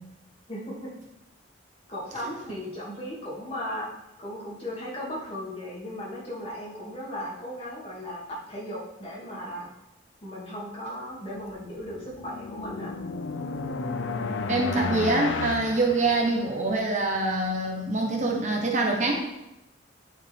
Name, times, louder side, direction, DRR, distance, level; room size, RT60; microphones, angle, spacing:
voice 1, 0.5-0.9 1.9-3.9 4.2-9.7 10.2-12.9, equal, 30° left, -6 dB, 2.6 m, -36 dB
sound 1, 11.8-16.8, left 4 dB, 75° left, 0.6 m, -33 dB
voice 2, 14.5-19.3, right 2 dB, 40° right, 1 dB, 1.2 m, -25 dB
9.2 x 7.1 x 3.6 m, 0.88 s
head